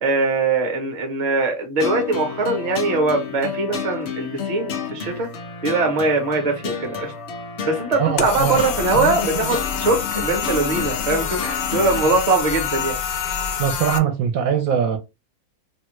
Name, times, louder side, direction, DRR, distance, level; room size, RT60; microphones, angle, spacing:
voice 1, 0.0-5.3 5.6-7.1 7.6-13.0, right 3 dB, 35° right, 0.7 m, -21 dB
sound 1, 1.8-12.0, left 7 dB, 60° left, 0.8 m, -31 dB
voice 2, 8.0-8.6 8.9-9.5 13.6-15.0, right 8 dB, 70° right, 1.0 m, -22 dB
sound 2, 8.2-14.0, left 7 dB, 85° left, 1.1 m, -26 dB
2.7 x 2.3 x 3.0 m
omnidirectional pair, 1.6 m